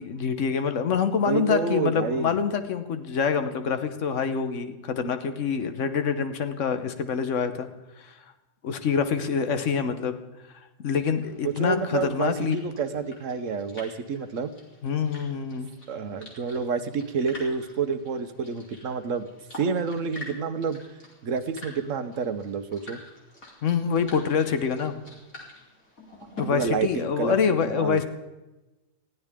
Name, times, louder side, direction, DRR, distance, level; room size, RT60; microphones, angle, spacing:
voice 1, 0.0-7.7 8.0-8.1 8.6-10.2 10.8-12.6 14.8-15.7 23.6-25.0 26.4-28.0, left 6 dB, 65° left, 9 dB, 1.4 m, -26 dB
voice 2, 1.2-2.4 11.4-14.5 15.9-19.3 19.5-20.8 21.2-23.0 26.5-28.0, right 5 dB, 70° right, 10 dB, 1.3 m, -29 dB
sound 1, 11.2-26.4, left 2 dB, 80° left, 3.8 m, -47 dB
20.5 x 15.0 x 3.7 m, 1.1 s
omnidirectional pair, 1.4 m